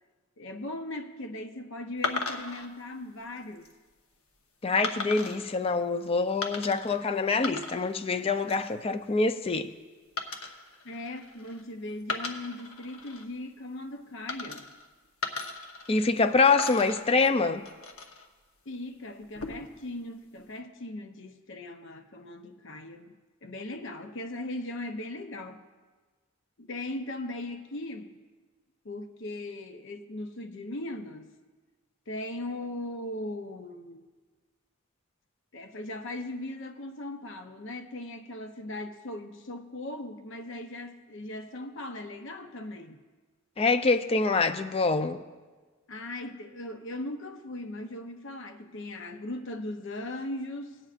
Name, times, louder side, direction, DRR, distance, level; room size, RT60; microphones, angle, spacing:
voice 1, 0.4-3.7 10.8-14.7 18.7-23.1 23.4-25.6 26.6-28.1 28.8-31.4 32.1-34.1 35.5-43.0 45.9-50.8, left 1 dB, 65° left, 0.7 m, -38 dB
sound 1, 2.0-2.7 3.4-3.7 4.8-5.4 6.4-7.0 7.3-8.0 8.3-8.7 10.2-11.6 12.0-13.2 14.3-14.9 15.2-16.2 16.6-18.3 19.2-19.8, left 4 dB, 80° left, 1.0 m, -37 dB
voice 2, 4.6-9.7 15.9-17.6 43.6-45.2, left 3 dB, 30° left, 0.4 m, -25 dB
19.0 x 8.8 x 2.5 m
head